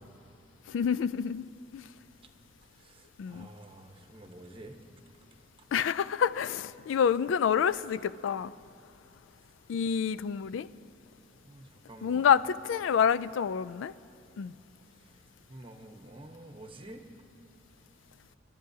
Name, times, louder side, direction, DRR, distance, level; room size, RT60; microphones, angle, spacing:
voice 1, 0.7-1.5 1.7-1.8 3.2-3.5 5.7-8.5 9.7-10.7 12.0-13.9 14.4-14.5, left 7 dB, 70° left, 16 dB, 0.3 m, -27 dB
voice 2, 3.3-4.8 11.4-12.3 15.5-17.0, right 1 dB, 30° right, 4 dB, 1.0 m, -48 dB
29.5 x 12.5 x 2.7 m, 2.5 s
head